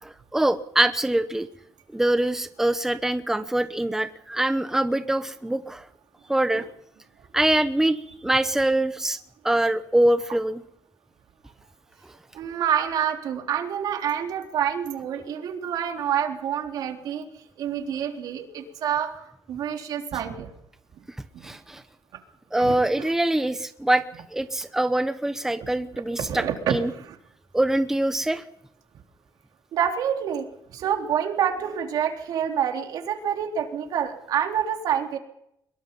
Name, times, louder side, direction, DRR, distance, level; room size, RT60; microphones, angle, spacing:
voice 1, 0.0-1.5 1.9-5.8 6.3-6.6 7.3-9.2 9.4-10.6 21.4-21.8 22.5-24.0 24.3-26.4 26.7-26.9 27.5-28.4, right 1 dB, 5° right, 10 dB, 1.0 m, -24 dB
voice 2, 12.3-17.3 17.6-20.5 21.0-21.1 21.4-21.6 22.6-23.1 25.6-27.2 29.7-35.2, right 9 dB, 75° right, 3 dB, 3.7 m, -28 dB
23.5 x 22.0 x 5.6 m, 0.76 s
cardioid pair, 130°, 7 cm